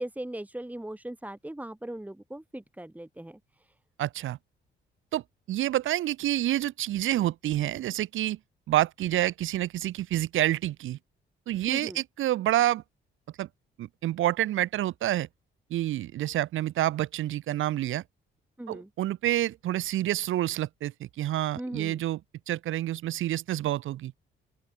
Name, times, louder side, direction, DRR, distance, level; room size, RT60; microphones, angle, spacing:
voice 1, 0.0-3.7 11.7-12.0 18.6-18.9 21.6-22.0, right 1 dB, 5° right, 5.7 m, -39 dB
voice 2, 4.0-4.4 5.1-5.2 5.5-8.4 8.7-11.0 11.5-12.8 13.4-13.5 13.8-15.3 15.7-18.0 18.7-22.2 22.5-24.1, right 14 dB, 85° right, 6.3 m, -28 dB
open air
cardioid pair, 90°, 20 cm